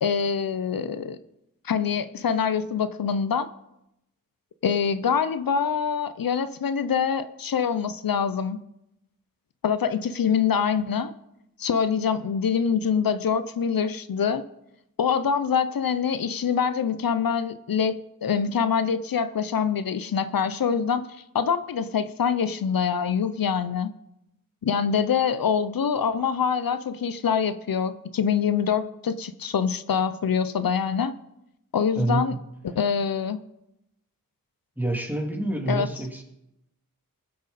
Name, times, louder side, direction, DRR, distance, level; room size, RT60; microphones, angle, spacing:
voice 1, 0.0-1.2 1.6-3.5 4.6-8.6 9.6-11.1 11.6-14.4 15.0-23.9 24.6-31.1 31.7-32.4 32.6-33.4 35.7-35.9, left 7 dB, 85° left, 13 dB, 0.6 m, -25 dB
voice 2, 31.9-32.4 34.8-36.2, right 2 dB, 5° right, 0 dB, 3.0 m, -27 dB
20.5 x 7.7 x 4.2 m, 0.86 s
wide cardioid pair, 60°, 34 cm